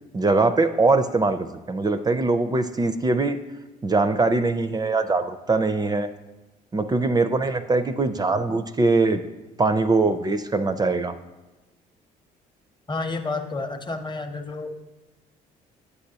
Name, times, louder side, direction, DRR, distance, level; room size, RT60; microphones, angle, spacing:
voice 1, 0.1-3.4 3.8-6.1 6.7-9.2 9.6-11.1, right 3 dB, 20° right, 9 dB, 0.4 m, -22 dB
voice 2, 12.9-14.7, left 3 dB, 25° left, 6 dB, 0.8 m, -30 dB
9.6 x 6.8 x 2.8 m, 1.1 s
hypercardioid pair, 60°, 19 cm